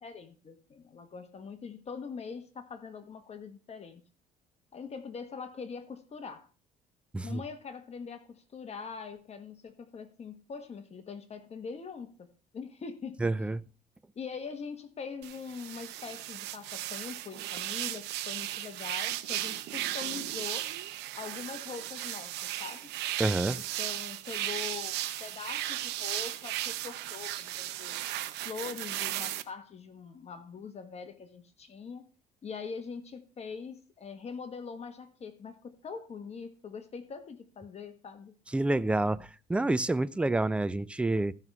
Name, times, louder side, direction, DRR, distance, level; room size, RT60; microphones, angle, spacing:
voice 1, 0.0-4.0 4.7-6.5 7.2-13.2 14.1-20.7 21.1-22.9 23.8-28.0 28.4-32.1 32.4-38.3, left 5 dB, 40° left, 1.4 m, -43 dB
voice 2, 13.2-13.6 23.2-23.6 38.5-41.3, right 2 dB, 5° right, 0.4 m, -28 dB
sound 1, 15.2-29.4, right 14 dB, 85° right, 0.8 m, -36 dB
14.0 x 5.6 x 4.7 m
cardioid pair, 110°, 17 cm